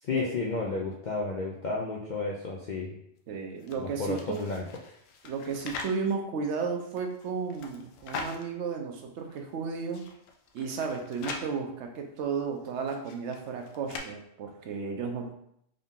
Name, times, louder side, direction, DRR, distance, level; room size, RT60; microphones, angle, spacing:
voice 1, 0.0-3.0 3.8-4.6, left 3 dB, 60° left, -2 dB, 0.4 m, -32 dB
voice 2, 3.3-4.5 5.2-10.1 10.5-15.3, right 5 dB, 70° right, 3 dB, 0.9 m, -33 dB
sound 1, 3.6-6.0 6.7-8.5 9.0-9.1 9.3-9.4 9.7-11.5 12.4-14.0, left 4 dB, 85° left, 1.0 m, -42 dB
3.8 x 2.7 x 3.5 m, 0.73 s
omnidirectional pair, 1.3 m